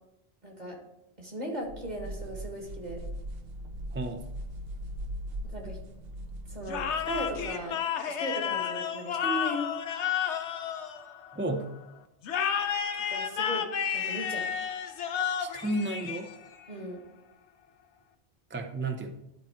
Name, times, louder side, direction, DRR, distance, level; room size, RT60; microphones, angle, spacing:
voice 1, 0.4-0.8 1.2-3.0 5.5-5.8 6.5-7.8 8.1-9.7 12.9-13.6 13.9-14.4 16.7-17.0, equal, 40° right, 1 dB, 1.8 m, -37 dB
sound 1, 1.7-7.7, equal, 65° right, 0.9 m, -40 dB
voice 2, 3.9-4.2 11.3-11.7 15.4-16.3 18.5-19.1, right 2 dB, 20° right, 6 dB, 0.3 m, -32 dB
sound 2, 6.7-11.5 12.2-16.6, left 8 dB, 80° left, 1.0 m, -31 dB
11.5 x 4.3 x 4.4 m, 0.89 s
omnidirectional pair, 1.1 m